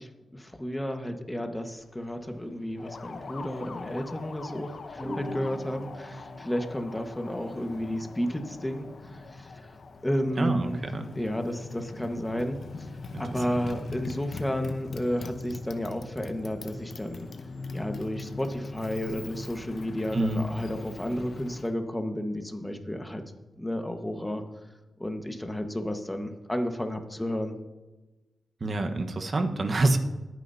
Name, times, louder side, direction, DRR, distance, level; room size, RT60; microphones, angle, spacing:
voice 1, 0.0-9.7 10.0-10.8 11.1-12.9 13.2-17.3 17.7-23.2 23.6-24.4 25.0-27.5, equal, 10° left, 5 dB, 1.5 m, -32 dB
sound 1, 1.8-1.9 2.3-2.5 3.3-3.7 5.0-9.3, equal, 5° right, 3.3 m, -42 dB
Motorcycle, 2.8-21.8, left 4 dB, 65° left, 0.9 m, -41 dB
voice 2, 10.4-11.1 13.1-13.2 20.1-20.4 28.6-30.0, right 2 dB, 50° right, 5 dB, 1.3 m, -26 dB
21.5 x 9.3 x 2.8 m, 1.1 s
cardioid pair, 70°, 0 cm